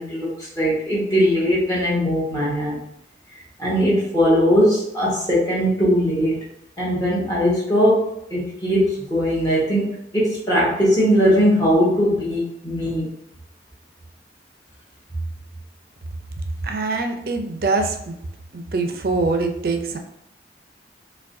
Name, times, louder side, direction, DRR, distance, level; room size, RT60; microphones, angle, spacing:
voice 1, 0.0-2.8 3.6-6.4 6.8-9.9 10.1-13.1, equal, 20° left, -8 dB, 1.3 m, -20 dB
voice 2, 16.6-18.1 18.5-20.0, right 3 dB, 55° right, 5 dB, 0.4 m, -23 dB
4.6 x 2.2 x 2.6 m, 0.80 s
head